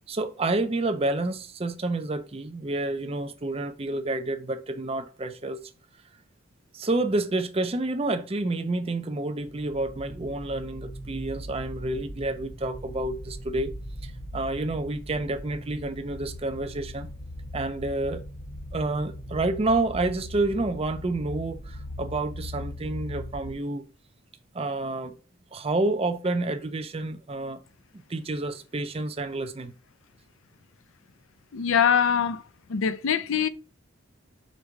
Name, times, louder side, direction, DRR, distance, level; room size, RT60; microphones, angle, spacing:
voice 1, 0.1-5.6 6.7-13.7 14.0-17.1 17.5-18.2 18.7-23.8 24.5-25.1 25.5-27.6 28.1-29.7, right 2 dB, 25° right, 0.5 m, -29 dB
sound 1, 9.4-23.5, equal, 40° left, 1.3 m, -39 dB
voice 2, 31.5-32.4 32.7-33.5, left 7 dB, 70° left, 0.5 m, -23 dB
5.2 x 4.2 x 4.6 m
head